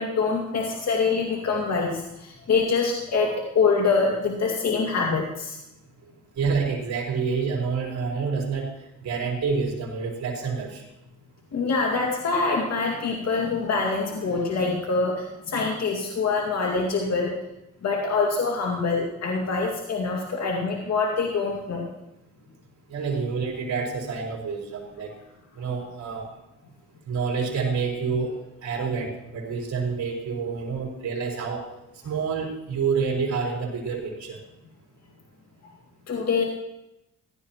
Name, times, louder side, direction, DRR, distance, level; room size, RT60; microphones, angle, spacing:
voice 1, 0.0-5.6 11.5-17.3 17.8-21.8 36.1-36.4, left 4 dB, 60° left, -1 dB, 2.3 m, -25 dB
voice 2, 6.4-8.7 9.0-10.8 22.9-25.1 25.6-26.2 27.1-31.7 32.0-34.4, right 5 dB, 65° right, -1 dB, 4.6 m, -28 dB
16.5 x 12.0 x 3.0 m, 0.86 s
cardioid pair, 90°, 30 cm